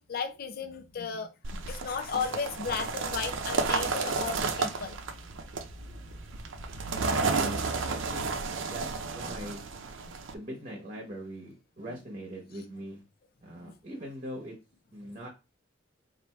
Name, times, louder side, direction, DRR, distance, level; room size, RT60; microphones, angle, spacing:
voice 1, 0.0-5.0 5.8-6.1 8.6-8.7 9.3-9.5 10.0-10.2 11.0-11.1 13.6-13.8 15.0-15.1, left 6 dB, 50° left, 0.5 m, -36 dB
sound 1, 1.4-10.3, right 4 dB, 75° right, 0.5 m, -32 dB
sound 2, 2.9-8.7, left 1 dB, 5° right, 0.6 m, -50 dB
voice 2, 7.0-8.3 8.6-9.6 10.3-13.0 13.4-14.5 14.9-15.3, equal, 40° right, 1.0 m, -41 dB
3.3 x 2.6 x 4.3 m
head